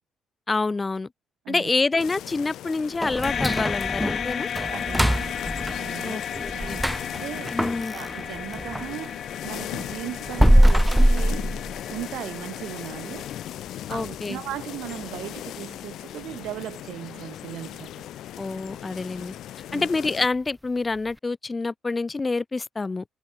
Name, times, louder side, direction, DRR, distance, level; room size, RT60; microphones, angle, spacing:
voice 1, 0.5-1.1 1.5-4.5 6.0-6.8 7.5-7.9 13.9-14.4 18.4-19.3 19.7-23.0, left 3 dB, 25° left, 1.4 m, -27 dB
sound 1, 2.0-20.3, left 12 dB, 80° left, 6.6 m, -38 dB
sound 2, 3.0-8.9 9.3-12.2 12.5-12.6 13.1-13.2 13.7-14.1 14.4-14.5 15.0-15.1, equal, 5° right, 0.9 m, -23 dB
sound 3, 3.2-13.5, left 7 dB, 55° left, 1.4 m, -34 dB
voice 2, 4.5-5.5 5.8-6.9 7.2-7.5 7.9-11.6 11.9-13.3 13.9-17.9 19.7-19.9, right 14 dB, 85° right, 3.1 m, -37 dB
cardioid pair, 90°, 0 cm